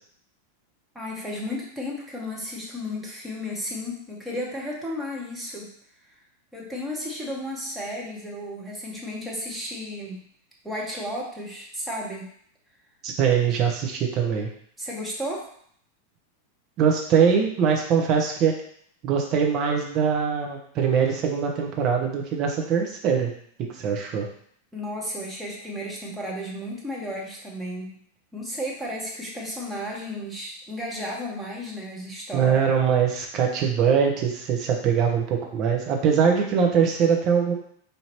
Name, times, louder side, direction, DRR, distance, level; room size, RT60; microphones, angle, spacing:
voice 1, 0.9-5.7 6.5-10.3 10.6-12.3 14.8-15.5 24.7-28.0 28.3-32.6, left 1 dB, 5° right, -4 dB, 1.1 m, -33 dB
voice 2, 13.0-14.5 16.8-18.5 19.0-23.3 23.7-24.3 32.3-37.5, right 7 dB, 35° right, 1 dB, 0.8 m, -22 dB
4.9 x 2.7 x 3.0 m, 0.63 s
figure-of-eight pair, 90°, 0 cm